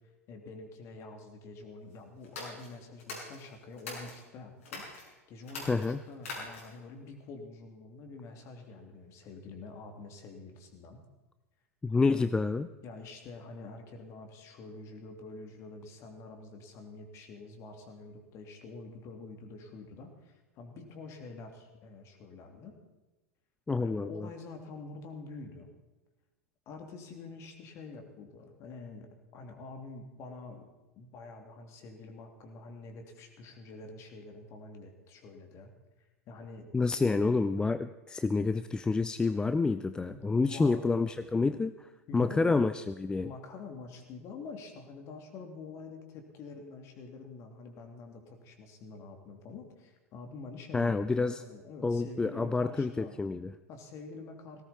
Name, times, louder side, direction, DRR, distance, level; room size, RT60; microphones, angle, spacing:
voice 1, 0.3-11.0 11.9-12.3 12.8-22.8 23.8-25.7 26.7-29.1 29.3-30.7 31.0-35.7 36.3-37.3 40.1-40.8 42.1-42.5 43.2-53.1 53.7-54.6, left 3 dB, 40° left, 5 dB, 2.8 m, -47 dB
sound 1, 2.2-4.2 4.6-5.0 5.4-6.8, left 3 dB, 65° left, 6.3 m, -43 dB
voice 2, 5.7-6.0 11.8-12.7 23.7-24.3 36.7-43.3 50.7-51.4 51.8-53.5, left 3 dB, 10° left, 12 dB, 0.4 m, -28 dB
18.0 x 17.0 x 4.3 m, 1.1 s
figure-of-eight pair, 90°, 8 cm